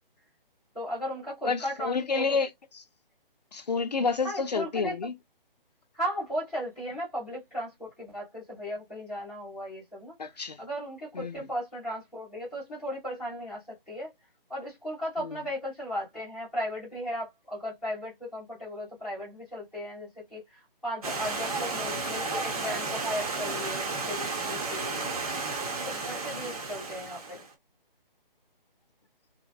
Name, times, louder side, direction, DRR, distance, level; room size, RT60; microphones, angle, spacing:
voice 1, 0.7-2.2 4.2-5.0 5.9-10.1 10.6-14.1 14.5-25.0 25.8-27.4, equal, ahead, 0.6 m, -36 dB
voice 2, 1.5-2.8 3.5-5.1 10.2-10.6 11.1-11.5 15.2-15.4 24.9-25.1 26.3-26.5, left 4 dB, 45° left, 0.5 m, -30 dB
Stream, 21.0-27.5, right 3 dB, 40° right, 0.9 m, -33 dB
2.7 x 2.1 x 2.3 m
hypercardioid pair, 160°, 29 cm